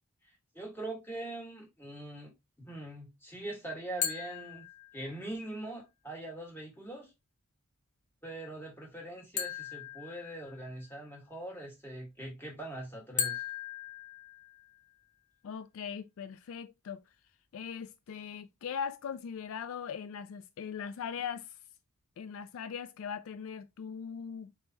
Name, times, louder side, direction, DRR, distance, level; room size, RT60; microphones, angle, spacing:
voice 1, 0.5-2.3 2.6-4.7 4.9-7.1 8.2-13.4, right 1 dB, 10° left, 1.5 m, -42 dB
sound 1, 4.0-5.3 9.4-10.9 13.2-14.9, left 7 dB, 35° left, 0.8 m, -38 dB
voice 2, 15.4-17.0 17.5-21.6 22.2-24.5, left 7 dB, 65° left, 0.3 m, -40 dB
4.4 x 3.5 x 2.8 m
head